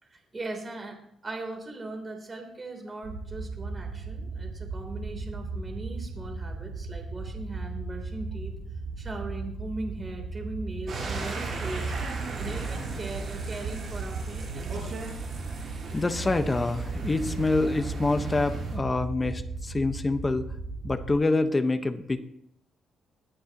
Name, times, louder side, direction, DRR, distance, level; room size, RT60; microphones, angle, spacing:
voice 1, 0.0-8.5 9.0-12.0 12.3-15.1, right 2 dB, 25° right, 3 dB, 3.4 m, -39 dB
sound 1, 3.0-21.1, right 3 dB, 70° right, 3.0 m, -36 dB
sound 2, 10.9-18.8, right 4 dB, 50° right, 7.9 m, -37 dB
voice 2, 15.9-20.5 20.8-22.3, left 2 dB, 20° left, 7 dB, 1.2 m, -26 dB
21.5 x 14.5 x 3.0 m, 0.74 s
cardioid pair, 110°, 0 cm